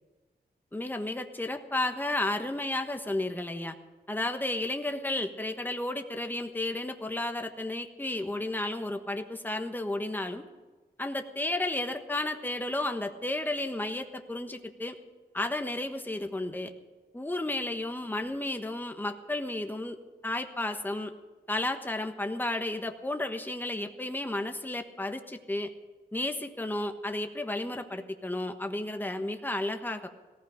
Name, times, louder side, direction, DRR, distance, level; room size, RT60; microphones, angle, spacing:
voice 1, 0.7-3.7 4.1-10.4 11.0-15.0 15.3-16.7 17.1-20.0 20.2-21.1 21.5-25.7 26.1-30.1, left 2 dB, 10° left, 6 dB, 1.2 m, -32 dB
18.0 x 15.0 x 5.0 m, 1.3 s
wide cardioid pair, 90°, 17 cm